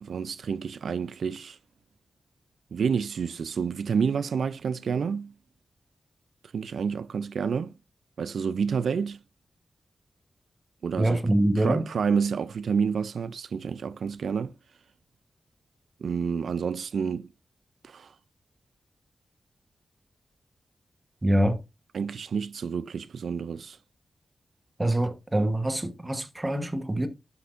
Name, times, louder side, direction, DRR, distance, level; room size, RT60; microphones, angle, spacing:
voice 1, 0.0-1.6 2.7-5.3 6.5-7.7 8.2-9.2 10.8-11.2 11.6-14.5 16.0-17.3 17.8-18.1 21.9-23.8, right 6 dB, 80° right, 0.3 m, -29 dB
voice 2, 11.0-11.8 21.2-21.6 24.8-27.1, right 1 dB, 15° right, 1.1 m, -25 dB
11.5 x 5.9 x 2.5 m
wide cardioid pair, 165°, 0 cm